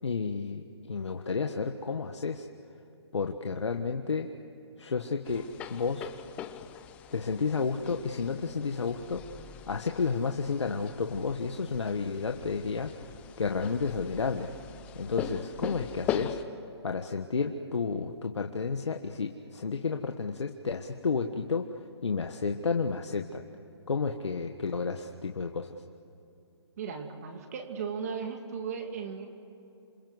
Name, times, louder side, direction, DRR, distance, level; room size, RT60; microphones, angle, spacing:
voice 1, 0.0-2.5 3.1-4.3 4.8-6.1 7.1-9.3 9.7-13.1 13.4-14.5 14.9-16.4 16.8-23.5 23.9-25.8, left 5 dB, 80° left, 4 dB, 1.5 m, -31 dB
sound 1, 5.2-16.4, left 10 dB, 10° left, 0.6 m, -41 dB
voice 2, 26.8-29.3, right 6 dB, 35° right, 4 dB, 2.6 m, -36 dB
27.5 x 25.0 x 8.0 m, 2.8 s
hypercardioid pair, 165°, 14 cm